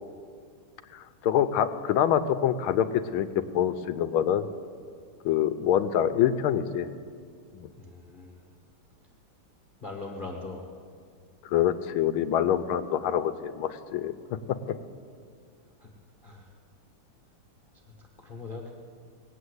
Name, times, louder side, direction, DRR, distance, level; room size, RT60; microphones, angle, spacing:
voice 1, 0.9-2.9 3.1-4.4 5.2-6.9 7.5-7.7 11.5-14.1, left 10 dB, 85° left, 12 dB, 1.5 m, -25 dB
voice 2, 7.8-8.4 9.8-10.7 14.5-14.6 15.8-15.9 16.2-16.5 18.2-18.7, left 3 dB, 30° left, -1 dB, 1.0 m, -40 dB
19.5 x 8.6 x 8.0 m, 2.2 s
omnidirectional pair, 2.3 m